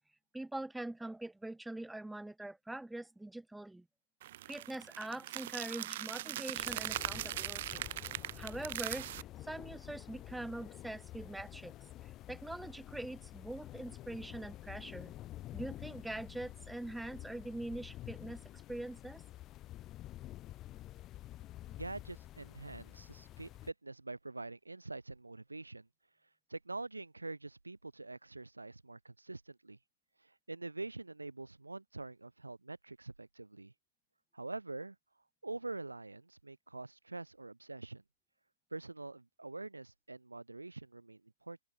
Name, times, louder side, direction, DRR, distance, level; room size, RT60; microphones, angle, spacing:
voice 1, 0.3-3.8 4.5-7.9 8.4-9.1 9.4-11.7 12.3-15.1 15.5-18.4 18.7-19.2, right 1 dB, 5° right, 1.4 m, -43 dB
sound 1, 4.2-9.2, right 14 dB, 50° right, 1.3 m, -40 dB
sound 2, 6.6-23.7, left 14 dB, 25° left, 3.4 m, -49 dB
voice 2, 21.7-25.9 26.5-29.8 30.5-33.7 34.3-35.0 35.4-38.0 38.7-41.6, right 2 dB, 85° right, 1.9 m, -45 dB
open air
figure-of-eight pair, 115°, 0 cm